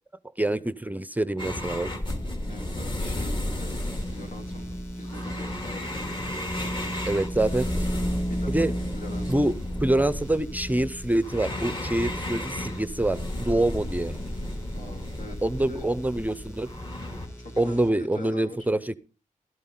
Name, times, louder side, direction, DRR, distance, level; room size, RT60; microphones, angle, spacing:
voice 1, 0.4-1.9 7.1-7.7 8.5-8.7 9.3-9.5 9.8-14.2 15.4-16.7 17.6-18.9, right 1 dB, 10° right, 16 dB, 0.6 m, -25 dB
sound 1, 1.4-17.3, left 1 dB, 35° left, 2.7 m, -34 dB
sound 2, 2.1-17.9, equal, 20° left, 3.4 m, -36 dB
voice 2, 2.5-3.7 4.1-6.7 8.3-9.4 13.3-13.5 14.7-15.4 15.7-15.9 17.4-18.7, left 2 dB, 70° left, 5 dB, 2.6 m, -43 dB
14.0 x 12.5 x 3.8 m, 0.33 s
wide cardioid pair, 130°, 14 cm